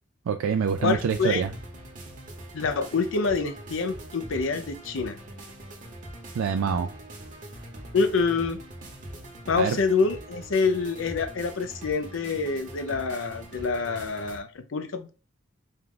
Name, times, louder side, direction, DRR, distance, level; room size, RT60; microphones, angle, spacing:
voice 1, 0.3-1.5 6.3-6.9 9.5-9.8, right 6 dB, 85° right, 0.3 m, -25 dB
sound 1, 0.7-14.4, right 1 dB, 40° right, 1.1 m, -43 dB
voice 2, 0.8-1.4 2.5-5.2 7.9-8.6 9.5-15.1, left 4 dB, 70° left, 0.5 m, -26 dB
4.5 x 2.4 x 3.7 m
head